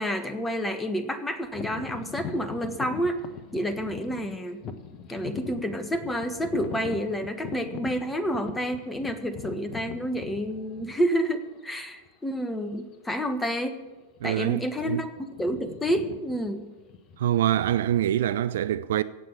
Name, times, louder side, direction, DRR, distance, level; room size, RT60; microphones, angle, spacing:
voice 1, 0.0-3.2 3.5-4.6 5.1-13.8 14.2-16.7, equal, 10° left, 1.4 m, -29 dB
sound 1, 1.5-11.3 12.0-12.1 12.7-12.9 13.2-13.5 14.1-14.7 14.9-18.3, left 7 dB, 35° left, 1.2 m, -41 dB
voice 2, 14.2-15.1 17.2-19.0, right 11 dB, 60° right, 0.4 m, -25 dB
16.5 x 7.6 x 8.5 m
figure-of-eight pair, 90°, 0 cm